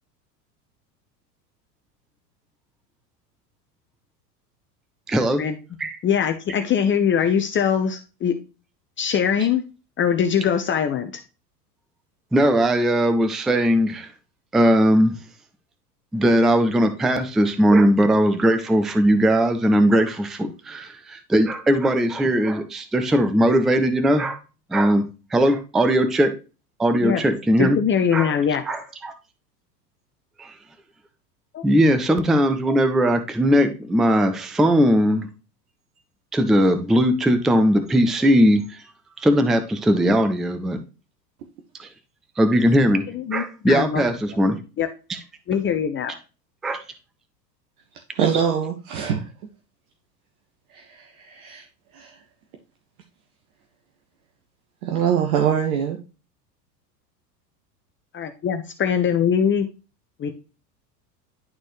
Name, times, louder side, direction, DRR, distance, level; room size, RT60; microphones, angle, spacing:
voice 1, 5.1-5.5 5.8-6.0 12.3-14.1 14.5-15.2 16.1-24.4 24.7-26.3 26.8-27.8 28.1-28.3 28.7-29.1 30.4-30.5 31.6-35.3 36.3-38.8 39.2-40.8 41.8-41.9 42.4-44.6 46.6-46.8, equal, ahead, 8 dB, 0.3 m, -19 dB
voice 2, 6.0-8.3 9.0-9.6 10.0-11.1 27.0-27.2 27.6-28.6 31.5-31.6 43.1-44.0 44.8-44.9 45.5-46.1 58.1-59.7 60.2-60.3, left 8 dB, 25° left, 6 dB, 0.8 m, -22 dB
voice 3, 48.1-49.3 50.7-51.6 51.9-52.1 54.8-56.0, right 8 dB, 60° right, 3 dB, 1.4 m, -23 dB
11.0 x 4.2 x 3.1 m, 0.32 s
hypercardioid pair, 85°, 49 cm